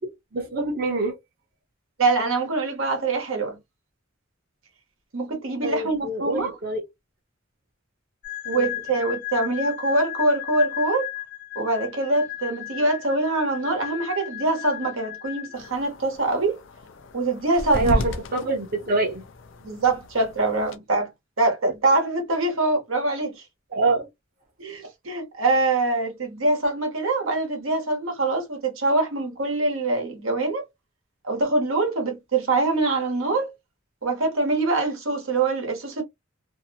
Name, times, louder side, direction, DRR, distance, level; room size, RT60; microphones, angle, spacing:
voice 1, 0.3-1.1 5.6-6.8 8.5-8.7 17.7-19.2 23.7-24.1, right 2 dB, 45° right, 0.7 m, -25 dB
voice 2, 2.0-3.6 5.1-6.6 8.5-11.1 11.5-16.6 17.1-18.0 19.6-21.1 21.4-23.4 24.6-30.6 31.2-33.5 34.0-36.0, right 2 dB, 90° right, 1.0 m, -24 dB
sound 1, 8.2-15.9, left 16 dB, 40° left, 1.0 m, -35 dB
sound 2, 15.5-20.7, left 1 dB, 65° left, 0.4 m, -34 dB
2.6 x 2.0 x 2.6 m
head